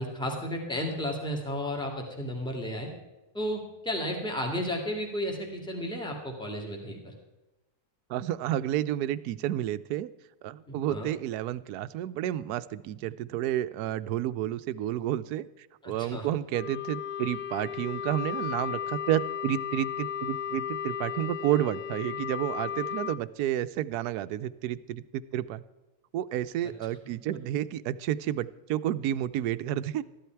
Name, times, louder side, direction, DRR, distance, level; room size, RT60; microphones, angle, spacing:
voice 1, 0.0-2.9 3.3-7.1 10.7-11.1 15.8-16.3, equal, 5° left, 0 dB, 2.0 m, -33 dB
voice 2, 8.1-10.1 10.4-25.6 26.1-30.0, right 12 dB, 80° right, 15 dB, 1.1 m, -31 dB
Wind instrument woodwind instrument, 16.5-23.2, left 9 dB, 65° left, 0.7 m, -35 dB
14.0 x 11.5 x 4.5 m, 1.1 s
omnidirectional pair, 1.7 m